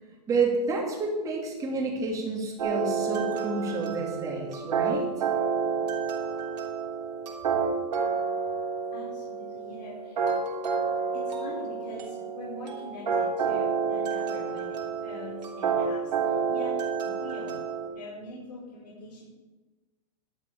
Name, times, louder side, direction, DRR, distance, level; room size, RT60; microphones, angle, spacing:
voice 1, 0.3-5.1, right 3 dB, 15° right, -1 dB, 2.7 m, -29 dB
sound 1, 2.6-17.9, right 6 dB, 90° right, 3.6 m, -29 dB
voice 2, 5.7-6.0 8.9-10.2 11.1-16.7 17.0-17.6 17.9-19.2, left 2 dB, 85° left, -6 dB, 4.5 m, -43 dB
12.5 x 5.9 x 8.8 m, 1.2 s
hypercardioid pair, 155°, 21 cm